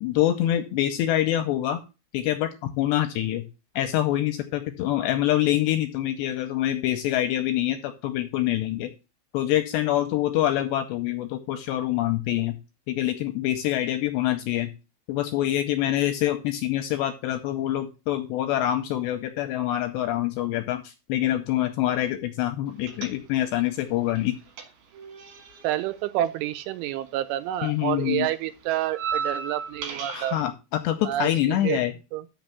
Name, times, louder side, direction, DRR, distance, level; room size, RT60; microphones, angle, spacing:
voice 1, 0.0-1.8 2.1-3.4 3.8-8.9 9.3-12.6 12.9-14.7 15.1-24.4 27.6-28.3 30.1-30.5 30.8-31.9, left 13 dB, 80° left, 2.5 m, -25 dB
sound 1, 22.9-23.6 23.9-27.3 27.5-30.4, right 6 dB, 60° right, 3.1 m, -36 dB
voice 2, 25.6-30.4 31.0-31.8 32.1-32.3, right 13 dB, 85° right, 3.1 m, -28 dB
6.7 x 6.2 x 6.8 m
omnidirectional pair, 5.6 m